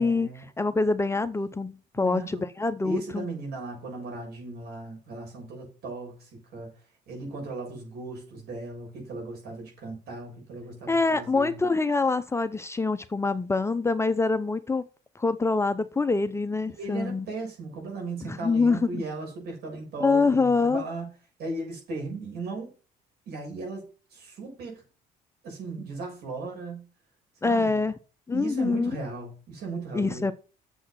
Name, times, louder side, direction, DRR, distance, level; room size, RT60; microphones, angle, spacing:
voice 1, 0.0-0.4 1.9-2.5 2.8-6.7 7.1-11.6 16.7-21.1 21.4-22.7 23.3-24.8 25.4-26.9 27.4-27.8 28.3-30.3, right 3 dB, 70° right, 6.6 m, -37 dB
voice 2, 0.6-3.2 10.9-14.9 15.2-17.3 18.2-18.9 20.0-20.8 27.4-27.9 28.3-28.9 29.9-30.3, left 3 dB, 15° left, 0.7 m, -25 dB
8.4 x 7.4 x 6.0 m
cardioid pair, 110°, 17 cm